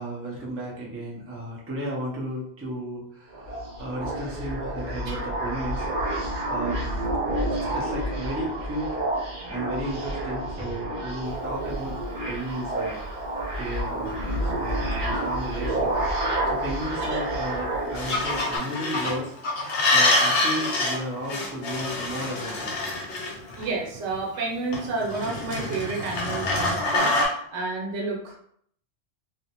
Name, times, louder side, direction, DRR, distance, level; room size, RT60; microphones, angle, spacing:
voice 1, 0.0-5.9 6.4-6.9 7.7-13.0 13.6-16.2 16.4-19.3 19.9-22.8, right 1 dB, 20° right, -3 dB, 0.3 m, -34 dB
sound 1, 3.3-18.6, right 1 dB, 50° right, 0.9 m, -29 dB
Fowl / Bird vocalization bird call bird song, 11.2-27.0, left 2 dB, 55° left, 0.7 m, -40 dB
sound 2, 18.0-19.1 19.6-21.0 21.2-23.6 24.7-27.3, left 2 dB, 75° left, 0.9 m, -26 dB
voice 2, 23.6-27.1 27.5-28.4, right 3 dB, 75° right, -2 dB, 1.0 m, -30 dB
2.4 x 2.0 x 2.8 m, 0.64 s
omnidirectional pair, 1.2 m